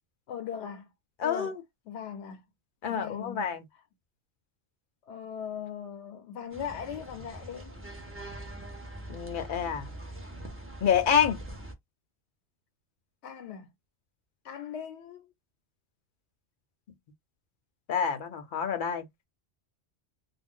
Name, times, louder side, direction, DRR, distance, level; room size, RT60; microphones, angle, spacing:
voice 1, 0.3-0.9 1.2-1.5 1.9-2.4 2.8-3.8 5.0-7.7 13.2-13.7 14.4-15.3, left 8 dB, 85° left, 0.9 m, -39 dB
voice 2, 1.2-1.5 2.8-3.6 9.1-9.9 10.8-11.4 17.9-19.0, left 7 dB, 60° left, 0.6 m, -27 dB
sound 1, 6.5-11.7, right 1 dB, 15° right, 0.5 m, -43 dB
2.3 x 2.1 x 3.6 m
omnidirectional pair, 1.1 m